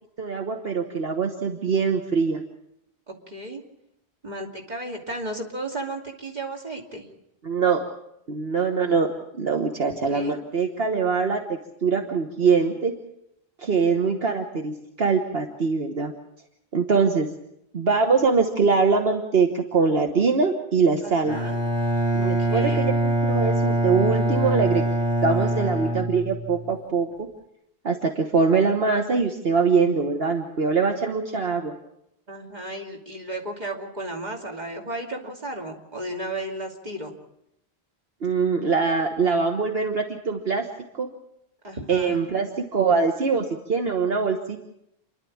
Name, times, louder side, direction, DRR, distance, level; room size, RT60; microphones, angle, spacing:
voice 1, 0.2-2.4 7.4-7.8 8.3-9.1 9.3-12.9 13.6-16.1 16.7-17.3 17.7-21.4 22.1-22.9 23.2-24.9 25.2-27.3 27.8-31.7 38.2-40.7 40.9-41.1 41.9-44.7, right 5 dB, 70° right, 4 dB, 1.5 m, -23 dB
voice 2, 3.1-3.6 4.2-7.1 10.1-10.4 21.0-21.6 22.2-22.9 32.3-37.1 41.6-42.2, right 1 dB, 45° right, 1 dB, 2.8 m, -34 dB
Bowed string instrument, 21.3-26.7, right 1 dB, 25° right, 2.1 m, -24 dB
28.5 x 11.5 x 8.6 m, 0.81 s
omnidirectional pair, 1.1 m